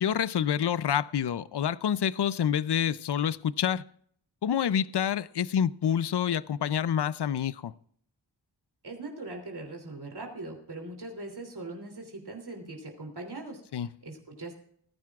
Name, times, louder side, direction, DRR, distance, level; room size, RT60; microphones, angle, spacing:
voice 1, 0.0-3.8 4.4-7.7 13.7-13.9, left 9 dB, 60° left, 0.6 m, -27 dB
voice 2, 8.8-14.5, right 2 dB, 60° right, 3.1 m, -41 dB
19.0 x 15.0 x 2.4 m
wide cardioid pair, 70°, 45 cm